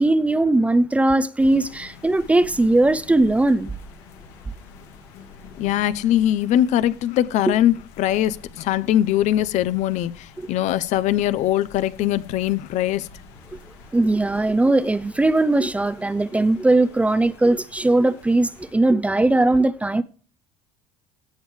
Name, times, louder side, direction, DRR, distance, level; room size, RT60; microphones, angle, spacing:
voice 1, 0.0-3.7 7.5-7.6 13.5-13.6 13.9-20.0, right 2 dB, 10° right, 0.5 m, -19 dB
sound 1, 1.4-18.7, left 4 dB, 85° left, 2.5 m, -46 dB
voice 2, 5.6-13.1, left 12 dB, 60° left, 0.7 m, -21 dB
16.5 x 6.4 x 3.2 m
cardioid pair, 115°, 14 cm